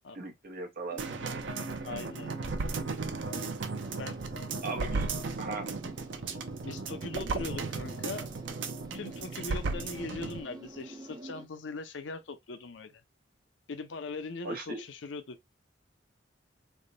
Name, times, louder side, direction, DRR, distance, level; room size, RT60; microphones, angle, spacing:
voice 1, 0.1-1.0 4.6-5.1 5.4-5.7 14.4-14.8, right 3 dB, 50° right, 1.0 m, -37 dB
sound 1, 0.9-11.5, right 2 dB, 20° right, 0.5 m, -47 dB
sound 2, 1.0-10.4 10.8-10.9, right 4 dB, 75° right, 0.6 m, -35 dB
voice 2, 1.8-2.4 3.8-4.2 6.6-8.3 8.9-13.0 13.7-15.4, left 3 dB, 75° left, 0.6 m, -40 dB
3.4 x 2.2 x 3.9 m
head